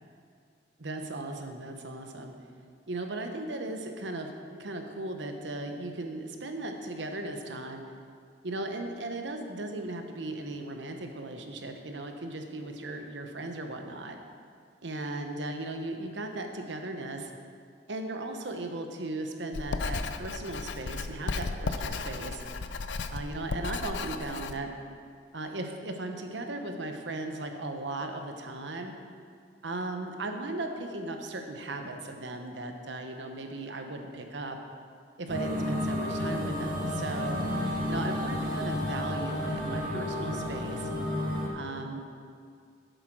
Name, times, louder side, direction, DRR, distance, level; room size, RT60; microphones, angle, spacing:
voice 1, 0.8-2.3 2.9-7.8 8.4-14.2 14.8-17.3 17.9-22.4 23.1-24.7 25.3-28.9 29.6-34.6 35.2-37.4 37.9-40.9 41.5-42.0, right 2 dB, 85° right, 5 dB, 1.0 m, -37 dB
Writing, 19.5-24.6, left 4 dB, 85° left, 0.5 m, -34 dB
sound 1, 35.3-41.5, left 1 dB, 50° right, 1.7 m, -31 dB
8.2 x 8.0 x 6.2 m, 2.3 s
head